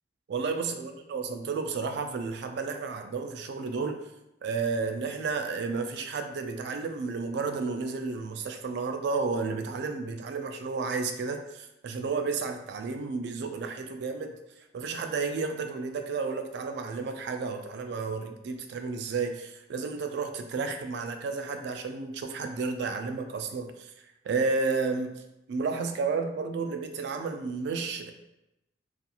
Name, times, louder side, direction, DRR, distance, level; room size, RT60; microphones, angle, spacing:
voice 1, 0.3-4.0 4.4-14.4 14.7-23.9 24.2-25.2 25.5-28.1, right 4 dB, 60° right, 6 dB, 0.3 m, -32 dB
2.4 x 2.3 x 2.8 m, 0.91 s
head